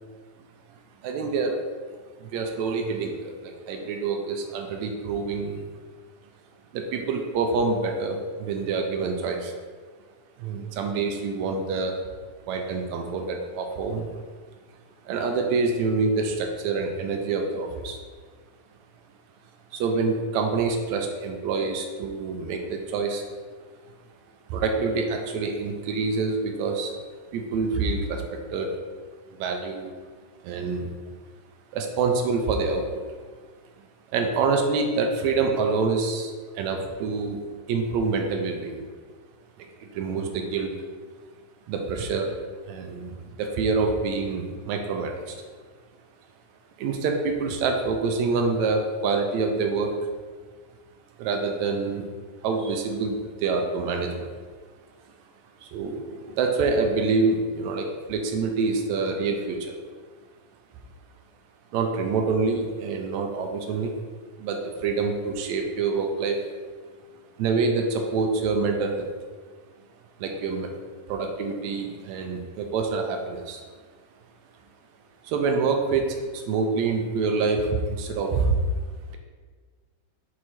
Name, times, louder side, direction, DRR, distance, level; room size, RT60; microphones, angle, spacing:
voice 1, 1.0-1.6 2.2-5.7 6.7-9.5 10.4-11.9 12.5-14.1 15.1-18.0 19.7-23.2 24.5-26.9 27.3-28.7 29.4-29.9 30.4-30.9 31.7-32.8 34.1-36.3 36.6-37.4 37.7-38.8 39.8-40.7 41.7-42.3 42.7-43.1 43.4-45.4 46.8-49.9 51.2-52.1 52.4-54.3 55.7-59.7 61.7-63.9 64.4-66.4 67.4-69.1 70.2-70.7 71.1-73.6 75.2-78.6, right 4 dB, 80° right, 4 dB, 1.8 m, -26 dB
5.7 x 4.7 x 4.2 m, 1.5 s
omnidirectional pair, 3.5 m